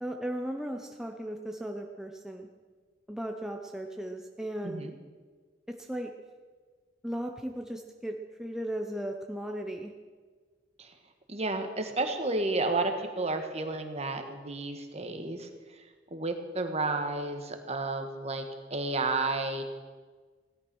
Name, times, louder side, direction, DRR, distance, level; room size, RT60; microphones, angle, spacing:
voice 1, 0.0-2.5 3.1-4.9 5.7-6.1 7.0-9.9, right 1 dB, 5° right, 3 dB, 0.8 m, -36 dB
voice 2, 4.6-4.9 10.8-10.9 11.3-15.8 16.1-18.4 18.7-19.6, right 2 dB, 35° right, 6 dB, 1.6 m, -32 dB
17.0 x 12.0 x 6.2 m, 1.5 s
head